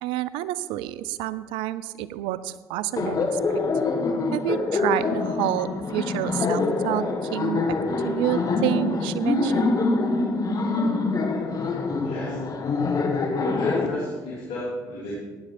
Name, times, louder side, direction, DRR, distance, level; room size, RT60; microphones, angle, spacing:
voice 1, 0.0-3.6 4.3-7.8 8.0-9.7, right 14 dB, 80° right, 16 dB, 0.5 m, -29 dB
Laughter, 3.0-13.9, left 3 dB, 45° left, 1.6 m, -25 dB
voice 2, 12.0-12.4 13.5-15.2, left 1 dB, 80° left, -7 dB, 3.4 m, -33 dB
15.5 x 10.0 x 4.4 m, 1.4 s
supercardioid pair, 60°, 8 cm